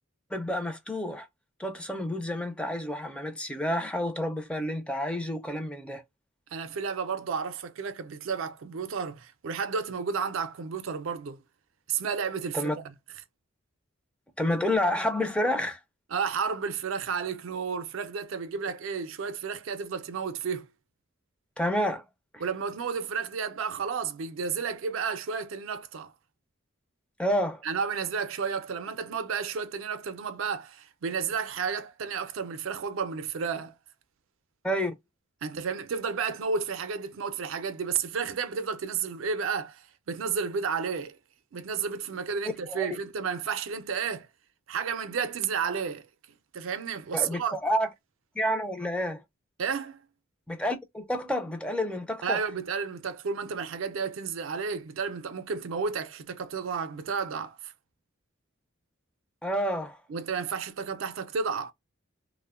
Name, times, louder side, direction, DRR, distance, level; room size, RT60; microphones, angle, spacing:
voice 1, 0.3-1.3 1.6-6.0 12.5-12.8 14.4-15.8 21.6-22.0 22.3-22.4 27.2-27.6 34.6-34.9 42.7-43.0 47.1-47.9 48.4-49.2 50.5-52.4 59.4-60.0, equal, 5° left, 0.4 m, -29 dB
voice 2, 6.5-11.4 11.9-12.9 16.1-20.7 22.4-26.1 27.6-33.7 35.4-41.2 41.5-44.3 44.7-46.1 46.5-47.6 49.6-50.0 52.2-57.7 60.1-61.7, right 6 dB, 75° right, 0.4 m, -32 dB
2.9 x 2.1 x 2.3 m
head